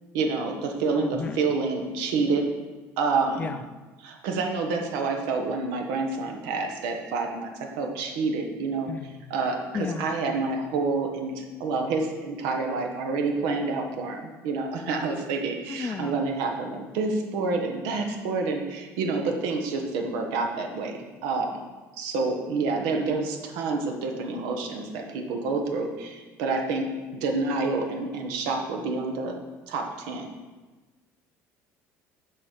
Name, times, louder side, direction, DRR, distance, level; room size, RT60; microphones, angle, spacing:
voice 1, 0.1-2.5 3.0-3.6 4.0-7.5 7.8-8.9 9.3-21.6 22.0-26.9 27.1-29.4 29.7-30.3, right 4 dB, 85° right, 3 dB, 1.2 m, -28 dB
voice 2, 0.9-1.4 3.4-3.6 8.9-9.2 9.7-10.1 15.7-16.2, left 6 dB, 25° left, 10 dB, 0.4 m, -33 dB
6.8 x 4.2 x 6.5 m, 1.2 s
cardioid pair, 145°, 6 cm